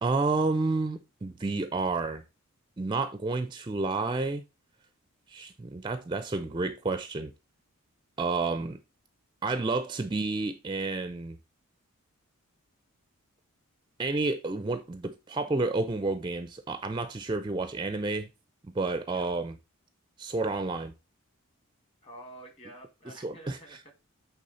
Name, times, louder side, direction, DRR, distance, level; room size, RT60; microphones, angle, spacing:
voice 1, 0.0-2.2 2.8-4.4 5.3-7.3 8.2-8.8 9.4-11.4 14.0-18.3 18.7-19.5 20.2-20.9 23.2-23.6, right 3 dB, 20° right, 0.4 m, -30 dB
voice 2, 22.0-23.9, right 1 dB, 25° left, 1.5 m, -48 dB
8.6 x 3.5 x 3.9 m
head